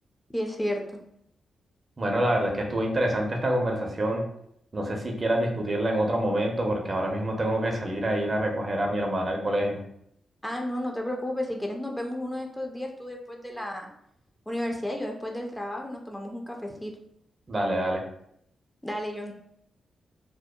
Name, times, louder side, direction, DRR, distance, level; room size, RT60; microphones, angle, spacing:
voice 1, 0.3-1.0 10.4-13.9 14.5-16.9 18.8-19.3, left 1 dB, 10° left, 1 dB, 0.4 m, -32 dB
voice 2, 2.0-4.2 4.7-9.8 17.5-18.0, right 1 dB, 40° right, 1 dB, 0.6 m, -26 dB
2.7 x 2.0 x 2.2 m, 0.72 s
supercardioid pair, 50°, 0 cm